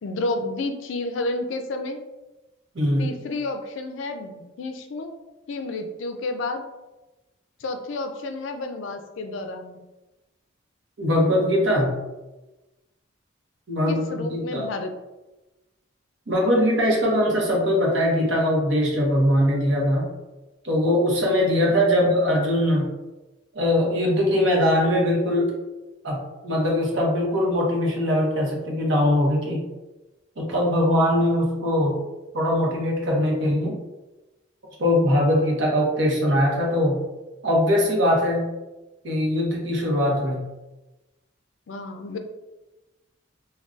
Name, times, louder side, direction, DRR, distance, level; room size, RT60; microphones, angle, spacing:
voice 1, 0.0-2.0 3.0-5.2 5.5-6.6 7.6-9.8 13.9-15.0 22.0-22.2 41.7-42.2, left 2 dB, 70° left, 7 dB, 0.4 m, -31 dB
voice 2, 11.0-11.9 13.7-14.7 16.3-20.1 20.6-22.9 23.5-25.5 26.0-26.2 26.4-29.6 30.4-32.0 32.3-33.8 34.8-37.0 37.4-38.5 39.0-40.4, left 1 dB, 65° right, -2 dB, 0.8 m, -21 dB
3.7 x 2.2 x 2.3 m, 1.1 s
head